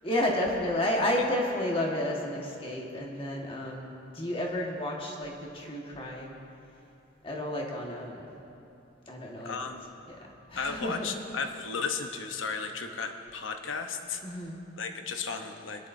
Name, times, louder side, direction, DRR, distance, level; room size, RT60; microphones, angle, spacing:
voice 1, 0.0-6.4 7.2-8.3 9.1-9.5 10.5-11.0 14.2-14.7, left 1 dB, 30° left, -1 dB, 1.6 m, -31 dB
voice 2, 9.4-9.8 10.6-14.2 14.8-15.9, left 5 dB, 80° left, 5 dB, 0.9 m, -34 dB
21.5 x 11.0 x 2.7 m, 2.8 s
head